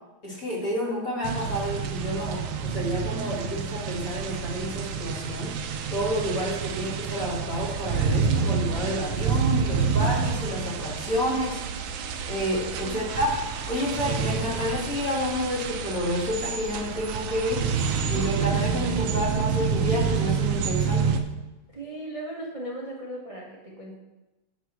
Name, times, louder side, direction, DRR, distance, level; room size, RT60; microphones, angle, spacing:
voice 1, 0.2-5.5 5.9-11.6 12.3-13.3 13.7-17.7 18.0-21.2, equal, 40° left, -4 dB, 2.6 m, -29 dB
sound 1, 1.2-21.2, right 6 dB, 80° right, 1.5 m, -28 dB
voice 2, 12.8-13.2 21.7-23.9, right 1 dB, 20° right, -4 dB, 0.9 m, -37 dB
9.9 x 4.2 x 6.0 m, 1.0 s
omnidirectional pair, 2.4 m